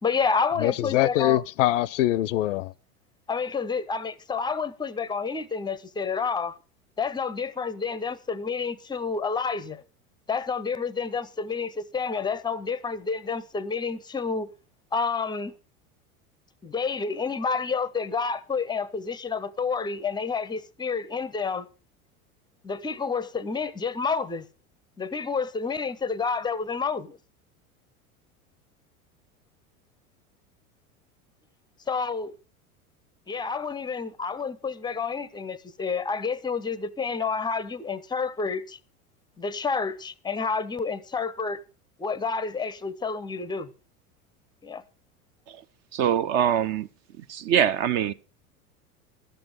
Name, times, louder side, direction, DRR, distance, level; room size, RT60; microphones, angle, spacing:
voice 1, 0.0-1.4 3.3-6.6 7.0-9.8 10.3-14.5 14.9-15.5 16.6-21.7 22.6-24.5 25.0-27.2 31.9-32.4 33.3-38.8 39.4-41.6 42.0-43.7 44.6-44.8, left 5 dB, 10° left, 0.6 m, -29 dB
voice 2, 0.6-2.7, left 14 dB, 55° left, 0.5 m, -23 dB
voice 3, 45.9-46.9 47.3-48.1, right 9 dB, 35° right, 0.6 m, -23 dB
12.5 x 7.8 x 5.3 m
figure-of-eight pair, 85°, 44 cm